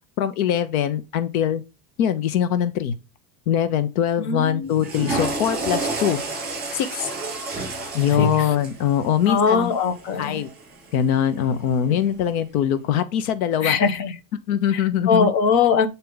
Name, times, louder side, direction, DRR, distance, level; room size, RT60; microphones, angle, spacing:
voice 1, 0.2-1.6 2.0-2.9 3.5-6.2 6.7-7.1 7.9-9.7 10.2-10.5 10.9-13.8 14.5-15.3, left 9 dB, 75° left, 1.0 m, -22 dB
voice 2, 4.2-4.7 8.2-8.5 9.3-10.4 11.9-12.2 13.6-14.1 14.7-14.8 15.1-15.9, left 5 dB, 40° left, 1.1 m, -21 dB
Water / Toilet flush, 4.7-10.9, right 2 dB, 20° right, 2.8 m, -30 dB
8.3 x 4.2 x 3.9 m
supercardioid pair, 165°, 43 cm